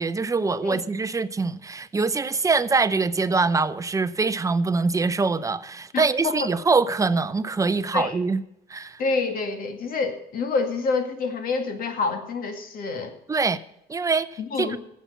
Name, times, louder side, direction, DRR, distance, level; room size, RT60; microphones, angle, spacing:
voice 1, 0.0-8.4 8.7-9.0 13.3-13.6 13.9-14.3 14.6-14.8, right 4 dB, 20° right, 0.6 m, -23 dB
voice 2, 5.9-6.5 7.9-8.2 9.0-13.2 14.4-14.8, left 4 dB, 60° left, 2.1 m, -27 dB
15.5 x 7.4 x 5.8 m
cardioid pair, 110°, 17 cm